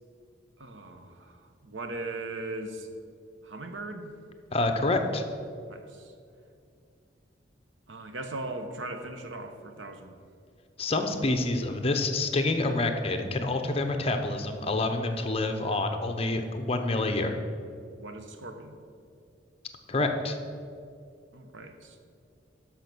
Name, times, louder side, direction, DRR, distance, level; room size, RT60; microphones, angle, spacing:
voice 1, 0.6-2.9 3.4-4.1 5.7-6.1 7.9-10.2 18.0-18.8 21.3-22.0, right 2 dB, 85° right, 7 dB, 1.0 m, -39 dB
voice 2, 4.5-5.2 10.8-17.4 19.9-20.4, left 2 dB, 30° left, 6 dB, 0.8 m, -27 dB
10.5 x 6.5 x 6.1 m, 2.4 s
head